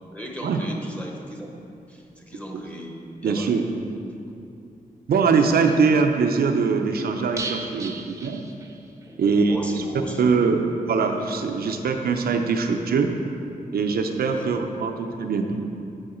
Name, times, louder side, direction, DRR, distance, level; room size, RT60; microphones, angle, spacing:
voice 1, 0.1-1.5 1.9-2.9 3.2-3.5 9.1-10.3 10.6-10.7 14.3-14.5, equal, 10° left, 0 dB, 0.9 m, -37 dB
voice 2, 3.2-3.6 5.1-8.4 9.2-9.8 10.2-13.1 13.7-15.8, right 5 dB, 90° right, 4 dB, 0.5 m, -22 dB
sound 1, 7.4-9.1 9.4-9.5 9.8-9.9, right 3 dB, 20° right, 0.5 m, -36 dB
8.7 x 4.8 x 4.3 m, 2.6 s
wide cardioid pair, 130°, 15 cm